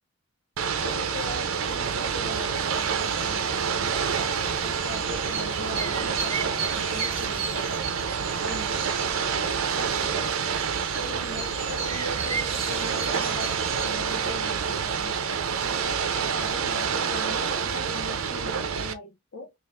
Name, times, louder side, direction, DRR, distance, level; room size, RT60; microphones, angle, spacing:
Ocean / Boat Water vehicle, 0.6-18.9, right 6 dB, 90° right, 0.6 m, -28 dB
voice 1, 0.8-4.0 4.6-7.9 8.4-8.9 9.3-10.4 11.0-15.2 15.6-19.5, left 1 dB, 65° left, 0.7 m, -40 dB
sound 1, 2.7-13.9, right 5 dB, 30° right, 0.9 m, -36 dB
3.5 x 2.5 x 3.8 m
head